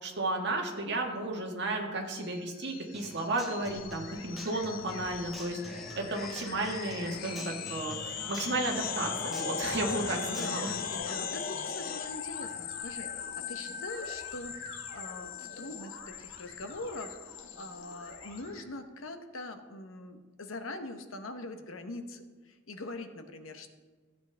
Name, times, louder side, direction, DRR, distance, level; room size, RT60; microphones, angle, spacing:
voice 1, 0.0-5.6 6.0-10.7, right 2 dB, 55° right, 1 dB, 1.6 m, -33 dB
sound 1, 2.2-18.4, left 7 dB, 45° left, 0.6 m, -39 dB
Human voice / Acoustic guitar, 2.9-10.9, right 1 dB, ahead, 1.9 m, -46 dB
sound 2, 3.6-18.6, left 2 dB, 65° left, 1.6 m, -50 dB
voice 2, 10.3-10.7 11.1-23.7, left 2 dB, 85° left, 8 dB, 1.0 m, -43 dB
15.0 x 8.1 x 3.4 m, 1.4 s
head